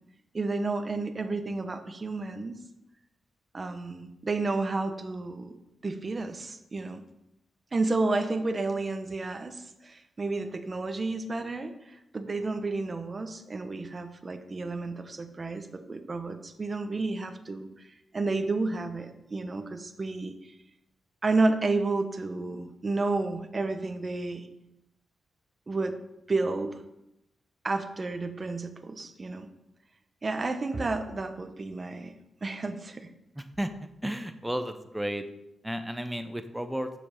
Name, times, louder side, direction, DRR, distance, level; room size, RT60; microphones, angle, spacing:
voice 1, 0.3-2.6 3.5-5.5 5.8-7.0 7.7-17.9 18.1-20.3 21.2-24.5 25.7-26.0 26.3-26.8 27.6-29.5 30.2-32.1 32.4-33.1, right 3 dB, 35° right, 8 dB, 1.0 m, -31 dB
voice 2, 33.4-33.7 34.0-35.3 35.6-36.9, equal, 5° right, 9 dB, 0.8 m, -33 dB
7.7 x 7.1 x 5.6 m, 0.86 s
cardioid pair, 100°, 0 cm